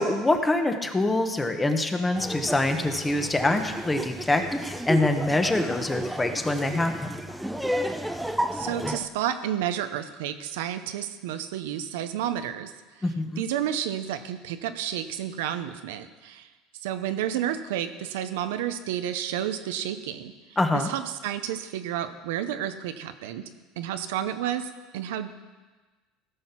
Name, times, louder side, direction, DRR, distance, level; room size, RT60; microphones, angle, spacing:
voice 1, 0.0-7.2 13.0-13.4 20.6-20.9, left 2 dB, 15° left, 6 dB, 1.1 m, -25 dB
Laughter, 2.1-9.1, equal, 5° right, 0.7 m, -32 dB
voice 2, 8.5-12.7 13.4-16.5 16.8-20.3 20.7-25.3, right 10 dB, 85° right, 9 dB, 0.8 m, -31 dB
15.5 x 6.5 x 5.8 m, 1.3 s
supercardioid pair, 115°, 0 cm